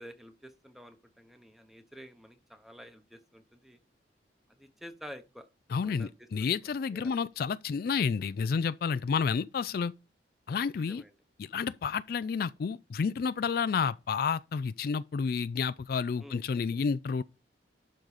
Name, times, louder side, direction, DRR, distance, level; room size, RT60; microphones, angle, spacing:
voice 1, 0.0-3.8 4.6-5.5 5.8-6.5 6.9-7.2 10.8-11.1 16.2-16.4, equal, ahead, 0.9 m, -49 dB
voice 2, 5.7-9.9 10.5-11.0 11.4-17.2, left 5 dB, 55° left, 0.3 m, -30 dB
12.0 x 3.9 x 5.0 m
head